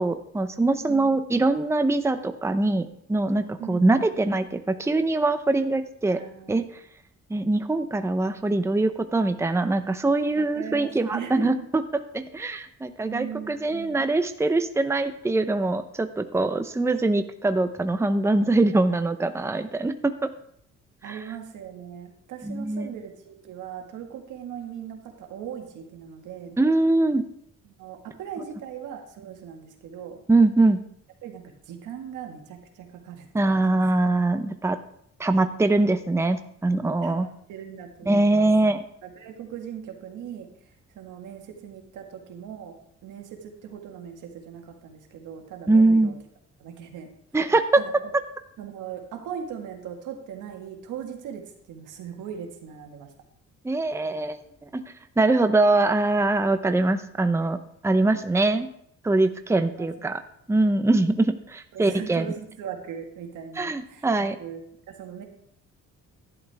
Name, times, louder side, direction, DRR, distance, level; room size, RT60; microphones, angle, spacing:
voice 1, 0.0-6.2 6.5-6.6 7.3-20.1 21.0-21.2 22.4-22.9 26.6-27.2 30.3-30.8 33.3-34.8 35.2-37.3 38.1-38.8 45.7-46.1 47.3-47.8 53.6-54.8 55.2-57.6 57.8-58.7 59.0-60.1 60.5-62.3 63.6-64.4, right 2 dB, 10° right, 9 dB, 0.7 m, -23 dB
voice 2, 0.8-1.2 3.6-4.2 6.1-6.6 10.3-11.7 13.0-14.2 21.0-26.6 27.6-30.2 31.2-33.8 37.0-38.5 39.0-46.2 46.6-47.1 47.8-47.9 48.6-53.1 59.5-59.9 61.7-64.6 65.0-65.2, right 8 dB, 85° right, 3 dB, 1.9 m, -39 dB
12.0 x 10.5 x 3.5 m, 0.70 s
cardioid pair, 90°, 30 cm